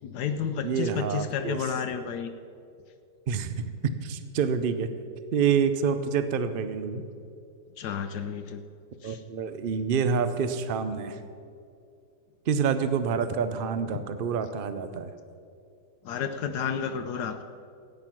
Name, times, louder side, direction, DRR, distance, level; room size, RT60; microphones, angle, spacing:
voice 1, 0.0-2.3 7.8-8.6 9.0-9.2 13.9-14.0 16.0-17.4, left 7 dB, 75° left, 8 dB, 1.2 m, -31 dB
voice 2, 0.6-1.6 3.3-3.6 4.0-4.9 5.3-7.0 9.0-11.2 12.5-15.1, right 6 dB, 85° right, 10 dB, 0.4 m, -27 dB
13.5 x 9.1 x 6.0 m, 2.4 s
omnidirectional pair, 1.8 m